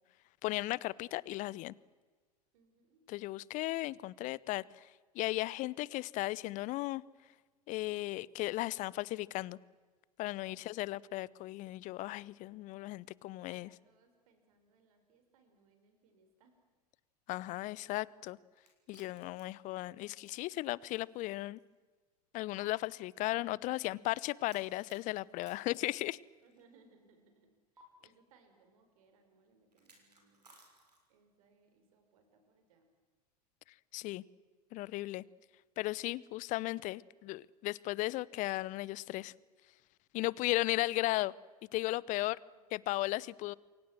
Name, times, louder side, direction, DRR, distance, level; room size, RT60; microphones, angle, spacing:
voice 1, 0.4-1.7 3.1-4.9 5.1-7.0 7.7-9.6 10.2-13.7 17.3-18.4 18.9-21.6 22.3-26.2 33.9-34.2 34.7-35.2 35.8-39.3 40.1-41.3 41.7-42.4 42.7-43.5, left 18 dB, 40° left, 0.8 m, -36 dB
voice 2, 2.5-3.1 10.5-10.6 13.4-16.6 26.4-30.6 31.1-32.9 42.1-42.2 42.5-42.6, right 4 dB, 60° right, 5.6 m, -68 dB
sound 1, 18.6-21.2 21.6-21.7 22.6-22.7 24.5-26.6 27.8-27.9 29.7-31.2, right 3 dB, 80° right, 6.5 m, -64 dB
28.5 x 23.5 x 7.7 m
figure-of-eight pair, 85°, 20 cm